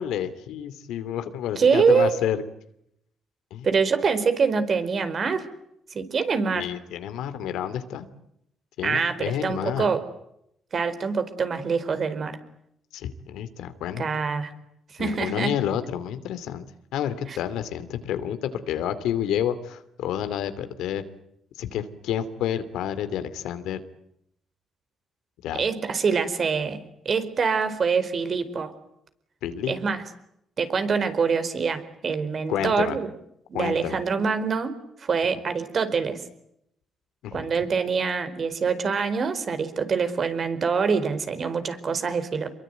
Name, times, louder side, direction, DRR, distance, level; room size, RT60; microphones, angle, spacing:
voice 1, 0.0-2.4 3.5-3.7 6.5-8.1 8.8-9.9 12.9-14.0 15.0-16.6 16.9-21.0 21.6-23.8 25.4-25.6 29.4-29.7 32.5-33.0 33.5-34.0 37.2-37.4, left 10 dB, 90° left, 11 dB, 2.7 m, -29 dB
voice 2, 1.6-2.1 3.6-5.4 5.9-6.7 8.8-10.0 10.7-12.4 14.0-14.5 14.9-15.5 17.3-17.4 25.5-28.7 29.7-30.0 30.6-33.1 33.5-36.2 37.3-42.5, right 5 dB, 45° right, 10 dB, 4.6 m, -25 dB
27.5 x 23.0 x 9.4 m, 0.78 s
cardioid pair, 90°, 0 cm